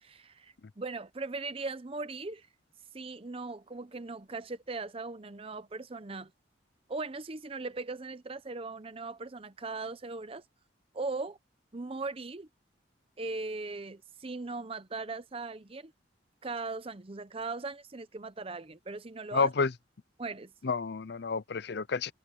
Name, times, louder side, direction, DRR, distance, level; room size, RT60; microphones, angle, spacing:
voice 1, 0.0-2.5 2.9-6.3 6.9-10.4 10.9-11.4 11.7-12.5 13.2-15.9 16.4-19.5 20.2-20.5, right 3 dB, 30° right, 0.7 m, -39 dB
voice 2, 19.3-19.7 20.6-22.1, left 4 dB, 60° left, 0.6 m, -29 dB
head